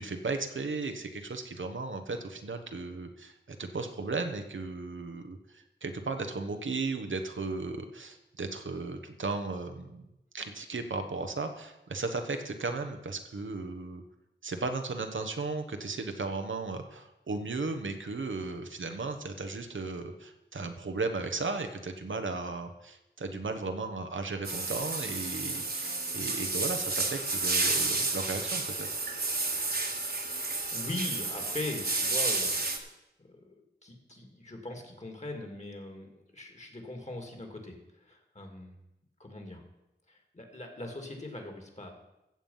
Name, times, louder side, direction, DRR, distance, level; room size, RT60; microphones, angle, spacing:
voice 1, 0.0-10.1 10.3-14.0 14.4-29.0, right 3 dB, 90° right, 6 dB, 1.2 m, -35 dB
sound 1, 24.4-32.8, right 3 dB, 50° right, 1.5 m, -31 dB
voice 2, 30.1-32.9 33.2-33.5 33.8-38.8 39.2-39.6 40.1-41.9, left 2 dB, 35° left, 3 dB, 2.5 m, -41 dB
15.0 x 7.2 x 5.6 m, 0.91 s
wide cardioid pair, 60°, 19 cm